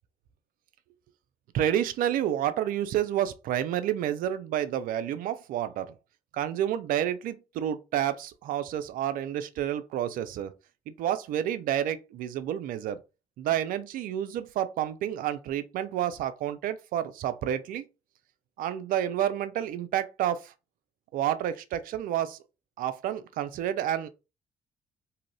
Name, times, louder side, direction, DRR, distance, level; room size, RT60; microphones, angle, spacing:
voice 1, 1.5-5.9 6.3-10.5 10.9-13.0 13.4-17.8 18.6-20.5 21.1-22.4 22.8-24.1, right 11 dB, 60° right, 0.4 m, -29 dB
2.7 x 2.5 x 3.1 m
hypercardioid pair, 45°, 16 cm